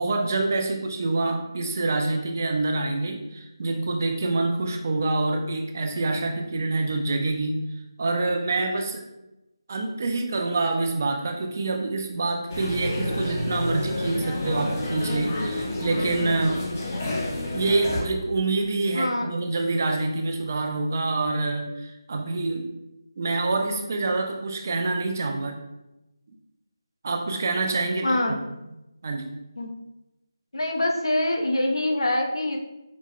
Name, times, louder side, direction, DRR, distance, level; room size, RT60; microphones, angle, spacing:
voice 1, 0.0-7.7 8.0-9.0 9.7-16.7 17.5-22.7 23.2-25.6 27.0-28.4 29.0-29.3, right 2 dB, 35° right, 4 dB, 0.4 m, -26 dB
sound 1, 12.5-18.0, left 1 dB, 25° left, 0.5 m, -29 dB
voice 2, 18.9-19.3 28.0-28.6 29.6-29.7 30.5-32.6, left 1 dB, 80° left, 2 dB, 0.7 m, -25 dB
4.8 x 2.1 x 3.6 m, 0.96 s
figure-of-eight pair, 170°, 2 cm